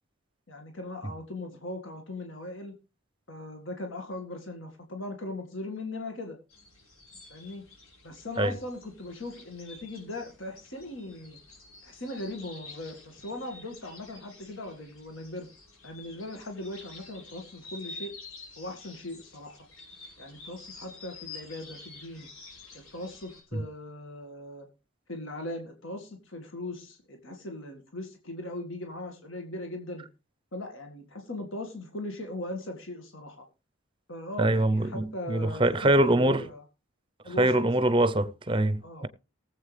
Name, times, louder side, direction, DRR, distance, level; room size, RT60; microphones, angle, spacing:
voice 1, 0.5-2.7 3.3-6.4 7.3-7.6 8.0-11.4 11.8-15.5 15.8-18.1 18.6-19.6 20.2-22.3 22.7-24.7 25.1-30.1 30.5-33.5 34.1-36.6 37.2-37.5 38.8-39.1, left 2 dB, 65° left, 2.0 m, -39 dB
sound 1, 6.5-23.4, left 3 dB, 85° left, 5.7 m, -49 dB
voice 2, 34.4-36.5 37.4-39.1, right 1 dB, 25° right, 0.7 m, -24 dB
18.5 x 7.9 x 3.3 m
head